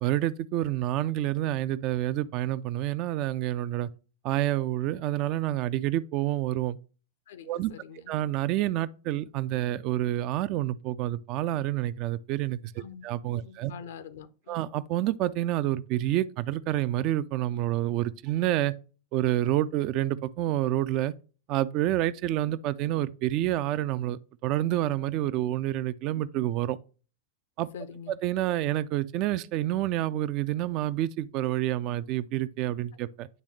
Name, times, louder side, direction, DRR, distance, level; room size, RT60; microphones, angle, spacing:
voice 1, 0.0-3.9 4.2-6.8 7.5-7.7 8.1-13.7 14.5-18.7 19.1-21.1 21.5-26.8 27.6-27.7 28.2-33.3, right 14 dB, 40° right, 0.3 m, -28 dB
voice 2, 7.3-8.1 12.8-14.6 27.7-28.1, left 7 dB, 60° left, 0.6 m, -45 dB
9.4 x 3.4 x 3.1 m
figure-of-eight pair, 90°, 0 cm